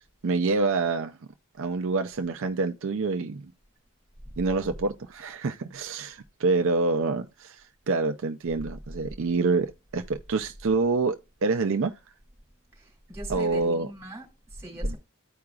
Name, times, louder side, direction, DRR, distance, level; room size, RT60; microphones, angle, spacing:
voice 1, 0.2-1.2 1.6-3.5 4.4-11.9 13.3-13.9 14.8-14.9, right 3 dB, 65° right, 0.5 m, -27 dB
voice 2, 12.7-15.0, equal, 15° right, 2.8 m, -37 dB
14.5 x 4.8 x 2.4 m
head